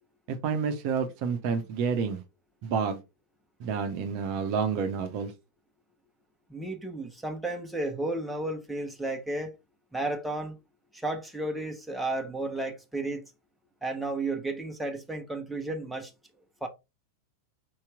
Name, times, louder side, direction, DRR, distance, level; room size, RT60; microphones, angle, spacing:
voice 1, 0.3-2.2 2.6-3.0 3.6-5.3, right 6 dB, 45° right, 0.7 m, -29 dB
voice 2, 6.5-9.5 9.9-10.6 10.9-13.2 13.8-16.1 16.6-16.7, right 2 dB, 5° right, 1.0 m, -33 dB
4.7 x 2.9 x 3.5 m
figure-of-eight pair, 90°, 0 cm